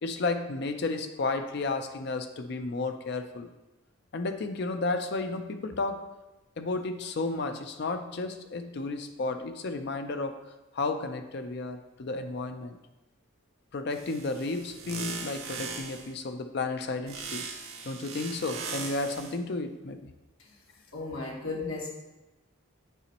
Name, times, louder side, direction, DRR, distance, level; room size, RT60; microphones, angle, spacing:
voice 1, 0.0-3.5 4.1-6.1 6.6-10.4 10.7-12.8 13.7-17.5 17.8-20.1, left 3 dB, 50° left, 8 dB, 0.4 m, -32 dB
sound 1, 13.9-16.1 17.1-19.4, right 5 dB, 80° right, 0.8 m, -39 dB
voice 2, 20.9-21.9, left 3 dB, 80° left, -1 dB, 1.3 m, -35 dB
6.9 x 5.1 x 2.9 m, 1.0 s
head